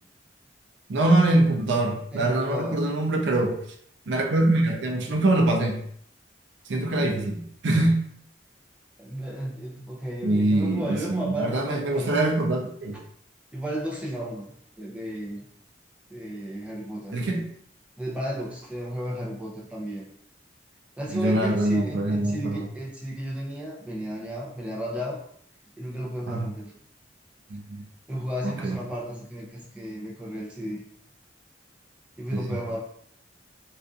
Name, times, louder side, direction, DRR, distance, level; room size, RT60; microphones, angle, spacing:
voice 1, 0.9-3.6 4.1-5.8 6.7-8.0 10.2-13.0 17.1-17.4 21.1-22.6 26.3-26.5 27.5-27.8 28.4-28.8 32.3-32.6, right 2 dB, 70° right, 2 dB, 0.4 m, -24 dB
voice 2, 2.1-2.9 6.7-7.3 9.0-12.1 13.5-14.5 14.8-15.4 16.1-17.1 18.0-20.1 21.0-25.2 25.8-26.7 28.1-30.8 32.2-32.8, equal, 5° right, -4 dB, 0.5 m, -33 dB
2.5 x 2.4 x 2.4 m, 0.65 s
head